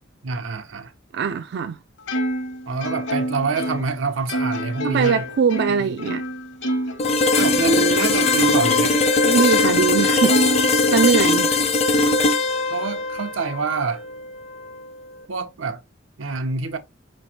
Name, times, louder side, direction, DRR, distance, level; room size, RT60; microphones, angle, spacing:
voice 1, 0.2-0.9 2.7-5.2 5.8-5.9 7.3-9.1 12.7-14.0 15.3-15.8 16.2-16.8, right 4 dB, 90° right, 0.8 m, -26 dB
voice 2, 1.1-1.8 4.8-6.2 9.2-10.4 10.7-11.5, right 6 dB, 60° right, 0.3 m, -21 dB
Plucked string instrument, 2.1-7.0 7.3-9.1 9.5-9.6 10.3-11.4, equal, 65° left, 1.0 m, -27 dB
sound 1, 7.0-14.8, left 3 dB, 35° left, 0.5 m, -20 dB
5.0 x 3.1 x 2.7 m
head